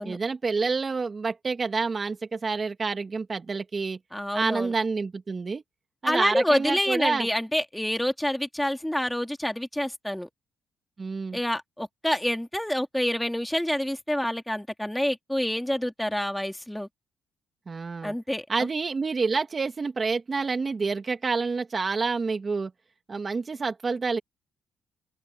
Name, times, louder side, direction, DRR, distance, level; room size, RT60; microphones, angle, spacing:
voice 1, 0.0-4.0 4.3-5.6 6.0-7.3 11.0-11.4 17.7-18.1 18.5-22.7 23.1-24.2, right 4 dB, 35° right, 2.3 m, -28 dB
voice 2, 4.1-4.7 6.0-10.3 11.3-16.9 18.0-18.7, left 1 dB, 5° left, 2.6 m, -27 dB
open air
cardioid pair, 90°, 0 cm